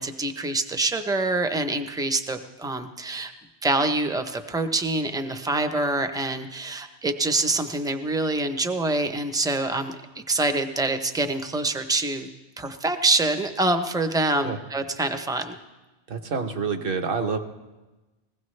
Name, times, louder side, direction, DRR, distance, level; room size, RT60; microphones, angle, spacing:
voice 1, 0.0-3.3 3.6-12.3 12.6-15.6, right 2 dB, 5° right, 7 dB, 0.5 m, -25 dB
voice 2, 16.1-17.4, right 5 dB, 55° right, 6 dB, 1.1 m, -27 dB
21.0 x 16.0 x 3.2 m, 1.1 s
omnidirectional pair, 1.1 m